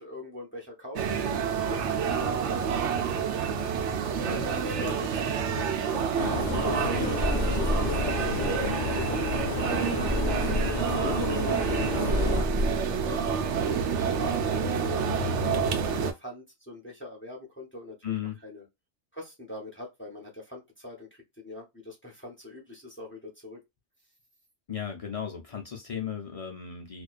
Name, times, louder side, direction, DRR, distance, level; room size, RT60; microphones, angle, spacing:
voice 1, 0.0-6.9 7.3-18.6 19.1-23.6, left 2 dB, 10° left, 0.7 m, -43 dB
sound 1, 1.0-16.1, right 6 dB, 85° right, 0.9 m, -28 dB
voice 2, 4.2-4.9 18.0-18.4 24.7-27.0, left 8 dB, 55° left, 0.4 m, -36 dB
sound 2, 6.2-12.4, left 5 dB, 75° left, 0.9 m, -32 dB
sound 3, 7.2-9.5 10.1-14.7, left 1 dB, 45° right, 0.8 m, -32 dB
2.4 x 2.2 x 2.3 m
omnidirectional pair, 1.2 m